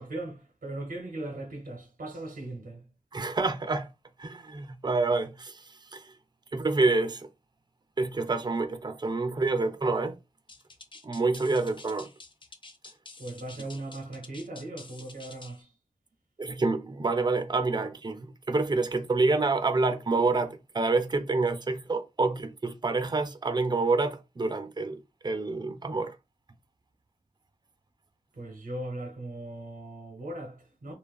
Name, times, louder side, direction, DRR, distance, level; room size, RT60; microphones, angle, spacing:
voice 1, 0.0-2.9 13.2-15.7 28.3-30.9, right 1 dB, 85° right, 0.8 m, -38 dB
voice 2, 3.1-3.9 4.2-5.6 5.9-6.0 6.5-7.3 8.0-10.1 11.0-12.1 16.4-26.1, right 3 dB, 30° right, 0.4 m, -27 dB
sound 1, 10.5-15.6, left 3 dB, 35° left, 0.5 m, -49 dB
2.8 x 2.4 x 2.3 m
cardioid pair, 40°, 15 cm